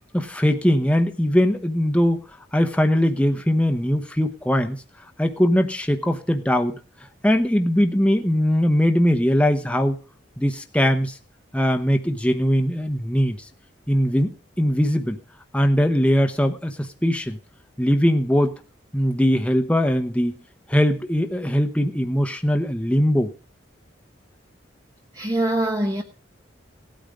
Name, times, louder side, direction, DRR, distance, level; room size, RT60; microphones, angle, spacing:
voice 1, 0.1-2.2 2.5-4.8 5.2-6.8 7.2-10.0 10.4-11.2 11.5-13.4 13.9-15.2 15.5-17.4 17.8-18.5 18.9-20.4 20.7-23.3, equal, 5° left, 5 dB, 1.0 m, -20 dB
voice 2, 25.1-26.0, right 1 dB, 20° right, 3 dB, 1.0 m, -23 dB
17.5 x 9.1 x 4.9 m, 0.36 s
head